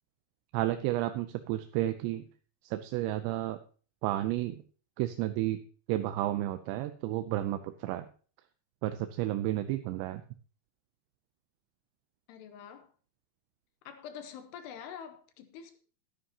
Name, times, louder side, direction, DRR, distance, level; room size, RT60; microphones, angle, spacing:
voice 1, 0.5-2.2 2.7-3.6 4.0-4.6 5.0-5.6 5.9-8.1 8.8-10.2, right 14 dB, 85° right, 2.9 m, -31 dB
voice 2, 12.3-12.9 13.9-15.8, left 8 dB, 80° left, 2.9 m, -46 dB
12.5 x 11.5 x 2.8 m
omnidirectional pair, 5.0 m